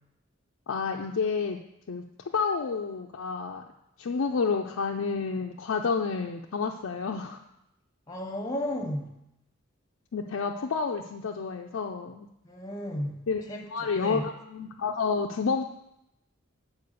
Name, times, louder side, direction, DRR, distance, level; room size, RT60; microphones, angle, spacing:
voice 1, 0.7-1.6 1.9-3.6 4.0-7.4 10.1-12.3 13.3-13.4 13.7-15.6, left 5 dB, 85° left, 1 dB, 0.5 m, -29 dB
voice 2, 8.1-9.1 12.5-13.2 13.5-13.6 14.0-14.2, left 1 dB, 20° left, 2 dB, 1.0 m, -33 dB
7.0 x 4.5 x 6.7 m, 0.84 s
head